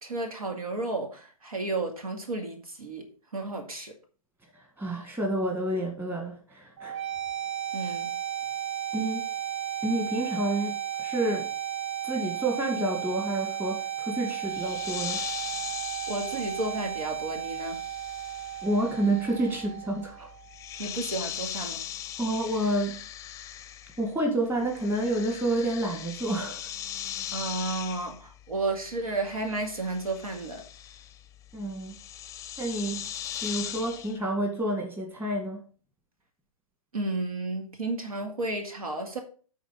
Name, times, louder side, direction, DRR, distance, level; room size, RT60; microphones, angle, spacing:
voice 1, 0.0-3.1 3.3-3.9 7.7-8.1 16.1-17.8 20.8-21.8 27.3-30.6 36.9-39.2, right 2 dB, 80° right, 2.1 m, -32 dB
voice 2, 4.8-7.0 8.9-9.2 9.8-11.5 12.0-15.2 18.6-20.3 22.2-23.0 24.0-26.6 31.5-31.9 32.6-33.1 33.4-35.6, right 1 dB, 10° right, 1.9 m, -29 dB
sound 1, 6.8-20.7, right 10 dB, 50° right, 1.5 m, -34 dB
sound 2, 14.5-24.2 24.4-34.2, left 10 dB, 15° left, 0.6 m, -40 dB
10.0 x 4.1 x 5.2 m
hypercardioid pair, 120°, 18 cm